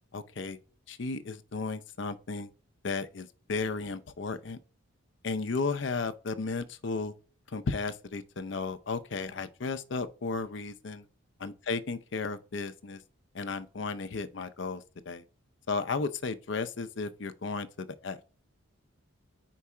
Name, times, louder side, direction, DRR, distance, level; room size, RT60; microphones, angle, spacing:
voice 1, 0.1-0.6 0.9-2.5 2.8-4.6 5.2-7.1 7.5-11.0 11.4-13.0 13.3-15.2 15.7-18.2, left 4 dB, 55° left, 0.5 m, -34 dB
4.8 x 4.6 x 4.3 m
head